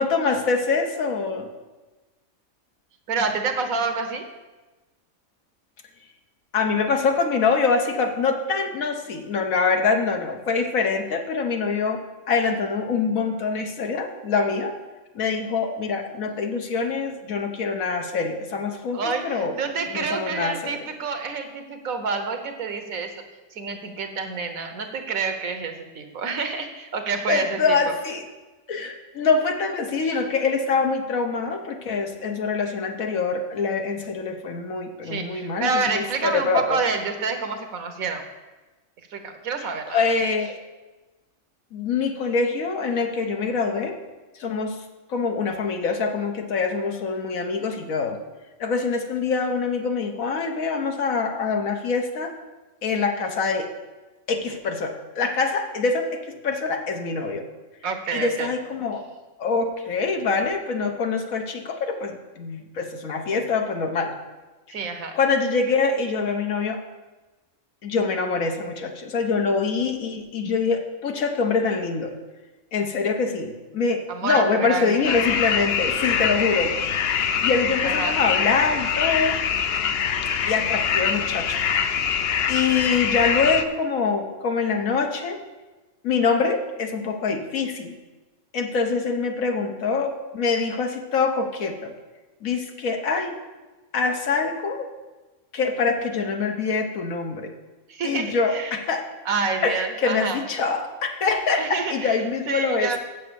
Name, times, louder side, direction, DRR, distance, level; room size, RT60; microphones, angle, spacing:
voice 1, 0.0-1.5 6.5-14.8 15.1-19.5 19.9-20.8 27.3-28.2 28.7-36.8 39.9-40.6 41.7-44.0 44.4-44.8 45.1-48.2 48.6-52.3 52.8-53.7 54.3-57.4 58.1-59.0 59.4-64.1 65.1-66.8 67.8-72.1 72.7-76.7 77.4-79.4 80.5-81.6 82.5-85.4 86.0-88.0 88.5-91.9 92.4-93.4 93.9-94.9 95.5-97.5 98.0-99.0 99.6-103.0, left 4 dB, 75° left, 5 dB, 1.5 m, -24 dB
voice 2, 3.1-4.3 18.9-23.2 23.5-27.9 30.0-30.2 35.0-38.2 39.1-40.1 57.8-58.5 64.7-65.1 74.1-75.2 77.8-78.2 97.9-98.7 99.2-100.4 101.6-103.0, right 4 dB, 80° right, 7 dB, 1.5 m, -28 dB
sound 1, 75.0-83.7, left 7 dB, 60° left, 0.7 m, -24 dB
7.8 x 7.6 x 6.9 m, 1.2 s
omnidirectional pair, 1.4 m